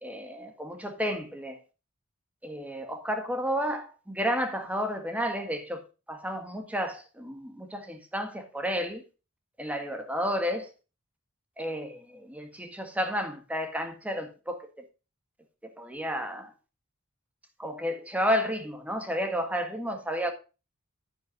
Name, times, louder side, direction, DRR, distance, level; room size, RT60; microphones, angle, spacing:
voice 1, 0.0-1.5 2.4-5.8 6.1-9.0 9.6-10.6 11.6-11.9 12.3-14.6 15.8-16.5 17.6-20.3, equal, 5° right, 1.7 m, -31 dB
10.5 x 10.0 x 2.5 m
head